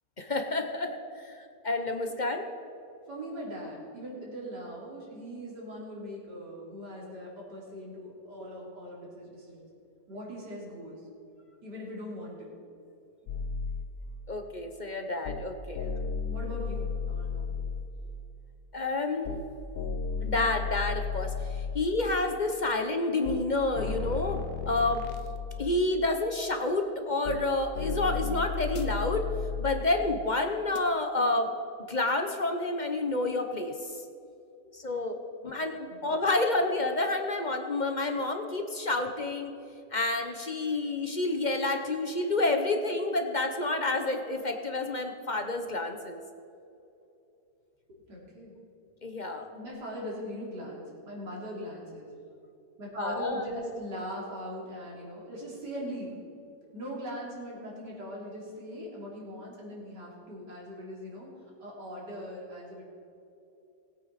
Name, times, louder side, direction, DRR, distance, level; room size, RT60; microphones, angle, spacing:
voice 1, 0.2-2.5 14.3-15.8 18.7-19.3 20.2-25.0 25.6-29.3 29.6-31.5 31.9-33.8 34.7-35.2 35.4-39.5 39.9-46.2 49.0-49.5 53.0-53.5, left 2 dB, 35° left, 5 dB, 0.7 m, -29 dB
voice 2, 3.1-9.7 10.1-11.1 11.6-12.6 13.2-13.4 15.7-17.5 35.5-35.6 35.9-36.1 47.9-48.5 49.5-52.1 52.8-56.2 56.7-61.3 61.6-62.9, equal, 80° right, -4 dB, 3.9 m, -40 dB
sound 1, 13.3-13.9 15.3-15.5 15.8-17.9 19.3-19.5 19.7-21.9 23.3-23.5 23.7-25.9 27.3-27.5 27.7-29.9 30.8-30.9, left 5 dB, 65° left, 1.2 m, -34 dB
20.5 x 8.7 x 4.1 m, 2.7 s
omnidirectional pair, 1.8 m